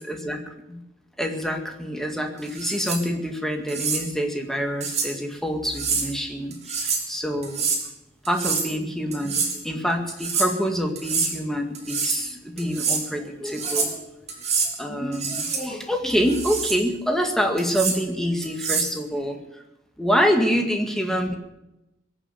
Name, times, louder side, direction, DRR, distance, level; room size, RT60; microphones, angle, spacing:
voice 1, 0.1-0.4 0.7-0.8 1.2-7.7 8.3-14.2 14.8-19.4 20.0-21.3, equal, ahead, 3 dB, 2.1 m, -26 dB
sound 1, 2.5-3.0 3.7-4.0 4.8-5.1 5.6-6.1 6.5-7.1 7.4-7.8 8.2-8.7 9.1-9.6 10.1-10.5 11.0-11.3 11.7-12.2 12.6-13.0 13.5-14.0 14.3-14.7 15.1-15.6 16.1-16.8 17.6-18.0 18.4-18.9, right 5 dB, 35° right, 3.4 m, -26 dB
22.0 x 7.6 x 8.4 m, 0.91 s
head